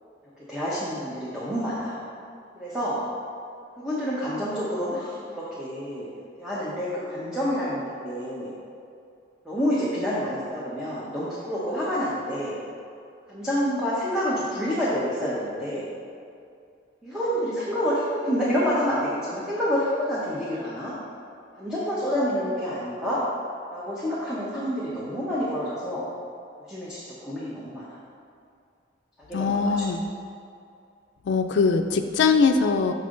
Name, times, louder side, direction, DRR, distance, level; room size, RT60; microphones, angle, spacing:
voice 1, 0.5-2.0 2.6-3.0 3.8-6.1 6.4-8.5 9.4-12.6 13.3-15.8 17.0-20.9 21.6-23.2 23.7-26.0 26.7-27.8 29.3-29.8, equal, 5° right, -10 dB, 0.9 m, -28 dB
voice 2, 29.3-30.0 31.3-32.9, left 4 dB, 80° left, 5 dB, 0.4 m, -21 dB
6.8 x 5.6 x 3.8 m, 2.4 s
head